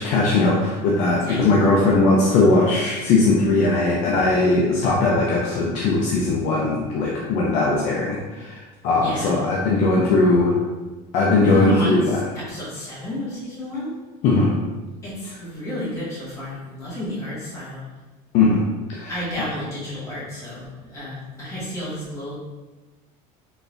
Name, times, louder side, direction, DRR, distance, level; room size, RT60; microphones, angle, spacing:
voice 1, 0.0-10.6 11.1-12.2 14.2-14.5 18.3-18.6 18.9-19.1, left 3 dB, 45° left, -3 dB, 0.5 m, -19 dB
voice 2, 9.0-9.4 11.5-14.0 15.0-17.8 19.1-22.3, left 1 dB, 20° left, -10 dB, 1.4 m, -31 dB
4.0 x 3.3 x 2.5 m, 1.2 s
cardioid pair, 180°, 16 cm